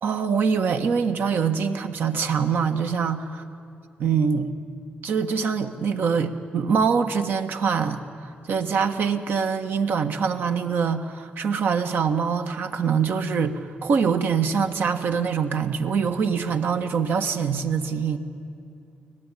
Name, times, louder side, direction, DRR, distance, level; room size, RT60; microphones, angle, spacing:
voice 1, 0.0-3.3 4.0-4.5 5.0-18.2, right 6 dB, 70° right, 7 dB, 1.5 m, -24 dB
24.5 x 17.5 x 9.9 m, 2.6 s
cardioid pair, 90°, 4 cm